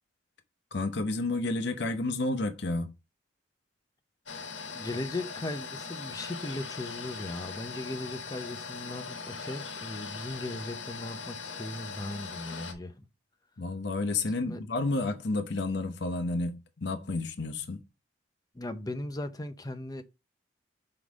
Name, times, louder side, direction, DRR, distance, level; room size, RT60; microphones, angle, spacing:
voice 1, 0.7-2.9 13.6-17.8, left 2 dB, 65° left, 0.8 m, -31 dB
sound 1, 4.3-12.7, left 5 dB, 80° left, 1.3 m, -40 dB
voice 2, 4.7-13.1 14.4-14.6 18.5-20.0, left 1 dB, 20° left, 0.6 m, -38 dB
4.8 x 3.9 x 5.1 m
head